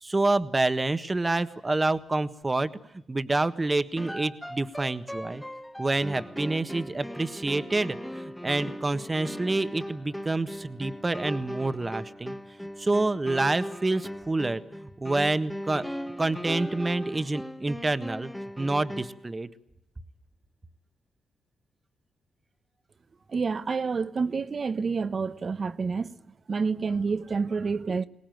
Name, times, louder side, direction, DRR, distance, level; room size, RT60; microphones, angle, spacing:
voice 1, 0.0-2.7 3.1-5.4 5.8-12.3 12.8-15.9 16.2-18.3 18.6-19.5, right 2 dB, 25° right, 1.4 m, -27 dB
sound 1, 4.0-19.3, equal, 5° left, 1.3 m, -38 dB
voice 2, 23.3-26.1 26.5-28.0, right 5 dB, 45° right, 1.1 m, -28 dB
23.0 x 19.0 x 9.3 m
cardioid pair, 70°, 0 cm